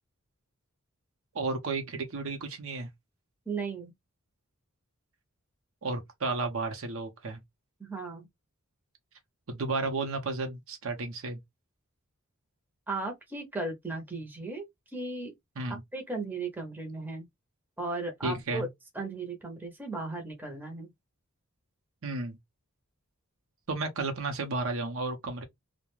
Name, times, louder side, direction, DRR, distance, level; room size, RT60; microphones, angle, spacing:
voice 1, 1.3-2.9 5.8-7.4 9.5-11.4 15.6-15.8 18.2-18.7 22.0-22.4 23.7-25.4, right 3 dB, 65° right, 0.7 m, -33 dB
voice 2, 3.5-3.9 7.8-8.3 12.9-14.6 14.9-15.3 15.9-17.3 17.8-18.7 18.9-20.9, right 3 dB, 10° right, 0.7 m, -36 dB
2.4 x 2.1 x 3.0 m
head